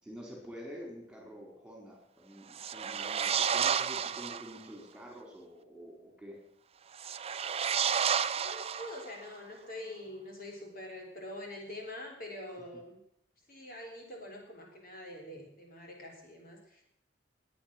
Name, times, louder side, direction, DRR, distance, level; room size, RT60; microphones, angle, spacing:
voice 1, 0.0-6.4, equal, 5° right, 0 dB, 4.8 m, -48 dB
sound 1, 2.5-4.6 6.9-9.3, right 7 dB, 30° right, 0.5 m, -31 dB
voice 2, 8.4-13.0 13.5-16.8, left 1 dB, 50° left, 1 dB, 4.0 m, -45 dB
20.0 x 9.5 x 6.2 m, 0.74 s
head